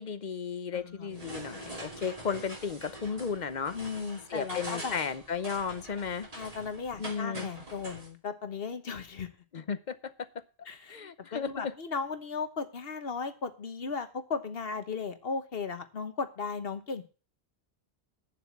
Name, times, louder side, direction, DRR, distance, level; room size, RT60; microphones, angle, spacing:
voice 1, 0.0-3.8 4.3-6.3 7.0-7.5 9.5-10.1 10.9-11.7, left 6 dB, 50° left, 13 dB, 0.9 m, -34 dB
voice 2, 0.7-1.2 1.4-1.7 3.7-5.0 6.3-9.3 10.7-11.0 11.3-17.0, left 5 dB, 65° left, 9 dB, 1.3 m, -36 dB
sound 1, 1.1-8.1, right 1 dB, 35° right, 3.1 m, -44 dB
9.0 x 7.4 x 7.0 m, 0.35 s
omnidirectional pair, 1.0 m